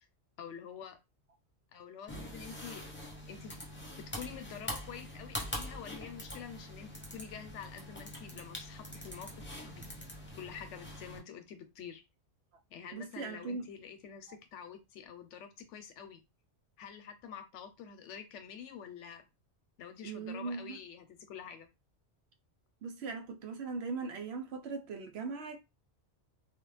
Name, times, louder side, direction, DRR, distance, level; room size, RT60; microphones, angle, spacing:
voice 1, 0.4-1.0 1.7-2.8 3.3-3.6 3.9-9.9 10.4-12.0 12.7-16.2 16.8-19.2 19.8-21.7, left 7 dB, 90° left, 0.9 m, -47 dB
sound 1, 2.1-11.2, left 1 dB, 15° left, 0.4 m, -44 dB
voice 2, 12.9-13.7 20.0-20.8 22.8-25.6, right 4 dB, 70° right, 0.8 m, -39 dB
2.4 x 2.1 x 3.1 m
omnidirectional pair, 1.2 m